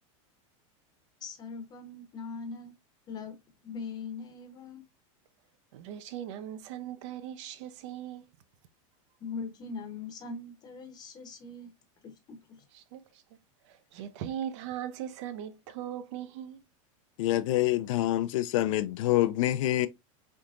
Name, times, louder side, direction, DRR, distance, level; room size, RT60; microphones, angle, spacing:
voice 1, 1.2-2.7 3.1-3.4 3.6-4.8 9.2-11.7 12.0-12.6, left 4 dB, 25° left, 0.8 m, -41 dB
voice 2, 5.7-8.3 12.7-13.2 13.6-16.6, right 10 dB, 55° right, 0.5 m, -39 dB
voice 3, 17.2-19.9, left 14 dB, 65° left, 0.4 m, -26 dB
3.5 x 2.8 x 2.4 m
supercardioid pair, 155°, 18 cm